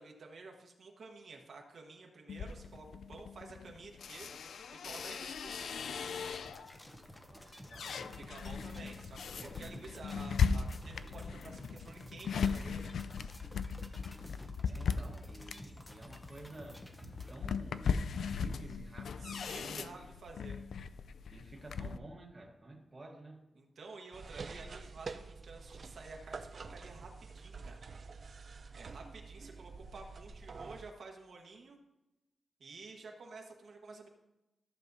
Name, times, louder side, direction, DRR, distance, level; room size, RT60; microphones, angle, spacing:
voice 1, 0.0-5.8 8.1-12.9 19.2-20.6 23.6-27.8 28.7-31.8 32.6-34.1, right 3 dB, 60° right, 1 dB, 1.2 m, -51 dB
sound 1, 2.3-6.8 7.3-22.0, left 6 dB, 70° left, 0.4 m, -38 dB
sound 2, 6.4-17.4, equal, 10° left, 0.8 m, -52 dB
voice 2, 7.3-8.2 9.4-9.8 14.6-20.1 21.3-23.4, right 2 dB, 25° right, 0 dB, 1.2 m, -52 dB
sound 3, 24.1-30.9, right 4 dB, 45° right, 0.5 m, -47 dB
14.0 x 7.3 x 2.7 m, 0.97 s
wide cardioid pair, 150°, 0 cm